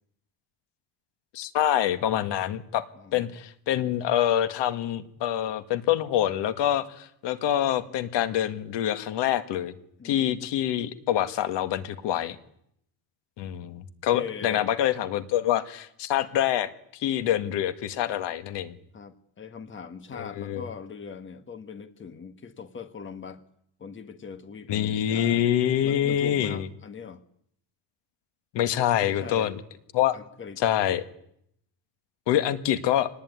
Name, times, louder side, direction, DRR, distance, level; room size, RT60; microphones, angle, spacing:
voice 1, 1.3-2.8 3.1-9.7 10.0-12.4 13.4-18.8 20.1-20.6 24.7-26.7 28.5-29.6 29.9-30.2 30.6-31.0 32.3-33.1, left 11 dB, 80° left, 11 dB, 1.9 m, -26 dB
voice 2, 2.9-3.3 10.0-10.4 14.1-14.6 18.9-23.4 23.8-25.5 25.8-27.2 29.0-29.5 30.1-30.6, left 6 dB, 30° left, 10 dB, 1.6 m, -41 dB
26.0 x 19.5 x 9.6 m, 0.73 s
cardioid pair, 140°, 42 cm